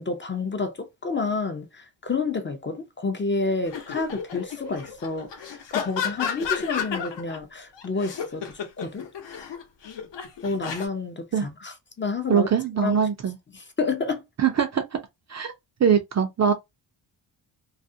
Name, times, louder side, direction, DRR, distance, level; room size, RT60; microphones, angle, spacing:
voice 1, 0.0-9.1 10.4-12.5 12.8-13.0 13.5-14.2, left 4 dB, 25° left, 0.5 m, -29 dB
sound 1, 3.7-7.4 7.8-10.9, left 7 dB, 60° left, 0.8 m, -32 dB
voice 2, 12.3-13.4 14.4-14.8 15.3-15.5 15.8-16.5, right 7 dB, 35° right, 0.4 m, -22 dB
2.4 x 2.0 x 2.6 m
cardioid pair, 95°, 47 cm